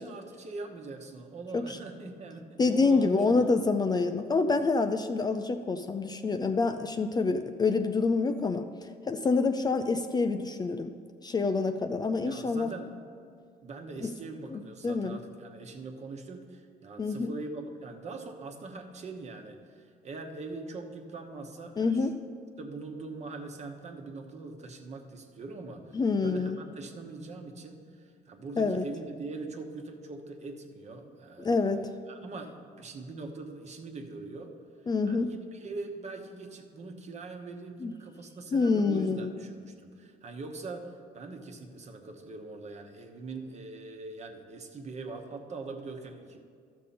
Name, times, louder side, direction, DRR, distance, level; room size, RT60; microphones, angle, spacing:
voice 1, 0.0-3.5 12.2-12.9 13.6-22.1 22.6-34.5 35.0-46.4, right 3 dB, 40° right, 4 dB, 1.2 m, -42 dB
voice 2, 2.6-8.7 9.1-10.9 11.2-12.7 14.0-14.1 14.5-15.2 17.0-17.3 21.8-22.1 25.9-26.6 28.6-28.9 31.4-31.9 34.9-35.3 37.8-37.9 38.5-39.3, left 4 dB, 25° left, 8 dB, 0.4 m, -27 dB
13.0 x 6.6 x 4.2 m, 2.2 s
cardioid pair, 110°, 17 cm